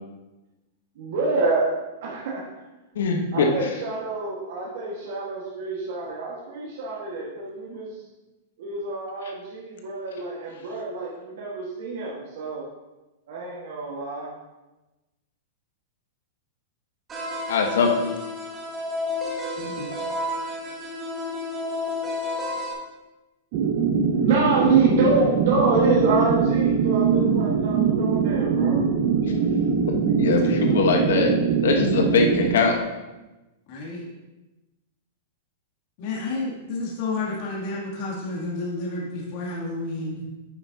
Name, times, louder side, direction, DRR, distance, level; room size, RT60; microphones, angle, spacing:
voice 1, 0.9-1.7 2.0-2.7 3.3-8.0 8.6-12.7 13.3-14.3 24.2-28.8, right 3 dB, 65° right, -4 dB, 1.5 m, -26 dB
voice 2, 2.9-3.5 17.5-18.1 30.2-31.4 31.6-32.8, left 4 dB, 85° left, 3 dB, 1.1 m, -21 dB
sound 1, 17.1-22.7, left 2 dB, 20° right, 1.5 m, -31 dB
voice 3, 19.6-19.9 30.2-30.3 30.6-30.9 33.7-34.0 36.0-40.2, left 2 dB, 50° left, -5 dB, 2.5 m, -31 dB
sound 2, 23.5-32.6, right 6 dB, 45° right, 0.8 m, -22 dB
10.0 x 6.0 x 2.8 m, 1.1 s
supercardioid pair, 145°, 0 cm